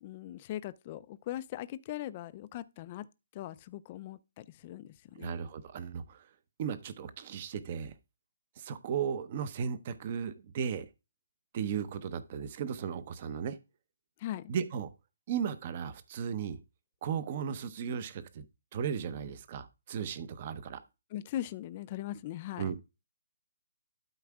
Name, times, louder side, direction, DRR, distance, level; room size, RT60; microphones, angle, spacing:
voice 1, 0.0-3.1 3.3-5.3 14.2-14.5 21.1-22.7, left 13 dB, 20° left, 0.4 m, -40 dB
voice 2, 5.2-6.3 6.6-7.9 8.6-10.9 11.5-13.6 14.5-14.9 15.3-16.6 17.0-18.5 18.7-20.8 22.6-22.7, right 7 dB, 25° right, 0.7 m, -35 dB
12.0 x 4.6 x 3.5 m
hypercardioid pair, 175°, 0 cm